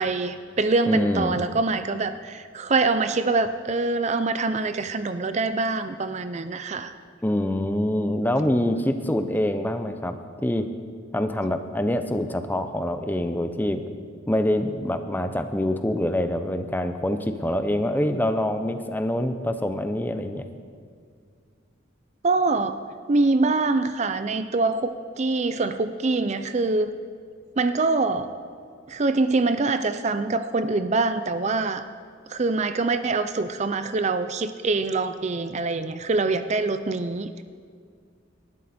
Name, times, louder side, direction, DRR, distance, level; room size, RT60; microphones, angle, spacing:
voice 1, 0.0-6.9 22.2-22.8 23.1-26.9 27.6-28.3 28.9-31.8 32.3-37.3, right 3 dB, 35° right, 11 dB, 0.5 m, -24 dB
voice 2, 0.9-1.4 7.2-10.7 11.1-13.8 14.3-20.5, left 1 dB, 10° left, 8 dB, 0.7 m, -25 dB
18.5 x 12.5 x 4.3 m, 2.1 s
head